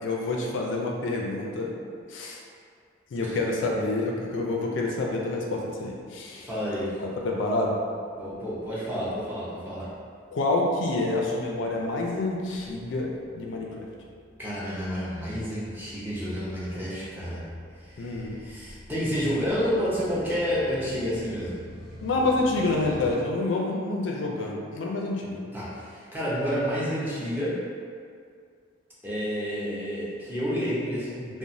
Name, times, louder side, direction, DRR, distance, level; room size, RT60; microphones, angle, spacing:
voice 1, 0.0-1.7 2.1-2.4 3.1-6.5 7.0-7.8 10.3-13.8 18.0-18.4 22.0-25.4, left 2 dB, 75° left, -1 dB, 0.4 m, -28 dB
sound 1, 6.3-23.1, left 1 dB, 70° right, 1.0 m, -48 dB
voice 2, 6.4-7.0 8.2-9.9 14.4-17.5 17.8-21.6 25.5-27.6 29.0-31.4, equal, 10° right, -9 dB, 0.6 m, -30 dB
2.9 x 2.0 x 2.5 m, 2.2 s
head